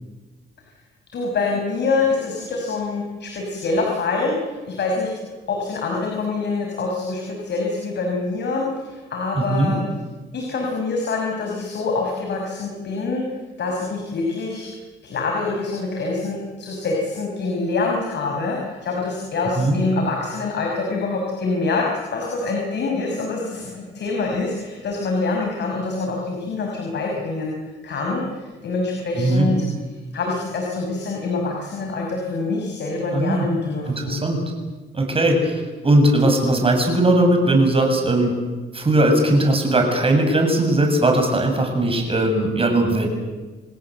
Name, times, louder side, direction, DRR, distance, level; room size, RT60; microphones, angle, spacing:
voice 1, 1.1-5.1 5.5-9.8 10.3-13.3 13.6-14.7 15.0-27.6 27.8-29.6 30.1-34.2, left 3 dB, 60° left, 0 dB, 5.8 m, -25 dB
voice 2, 9.4-9.7 19.6-19.8 29.2-29.5 33.1-33.5 33.8-34.4 34.9-38.3 38.7-43.1, right 1 dB, 30° right, 3 dB, 7.5 m, -19 dB
28.5 x 18.5 x 8.0 m, 1.3 s
cardioid pair, 90°, 20 cm